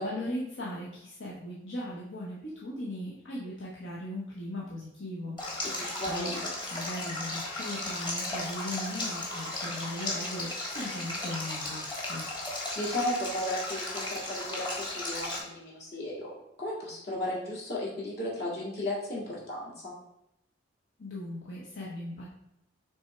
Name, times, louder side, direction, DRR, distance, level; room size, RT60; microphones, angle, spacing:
voice 1, 0.0-5.4 5.7-6.4 6.7-12.2 21.0-22.3, left 1 dB, 75° left, -5 dB, 1.1 m, -38 dB
Stream, 5.4-15.4, left 1 dB, 25° left, 1.5 m, -35 dB
voice 2, 5.6-6.4 12.7-20.0, left 1 dB, 55° left, -5 dB, 2.3 m, -35 dB
6.4 x 3.5 x 4.4 m, 0.83 s
head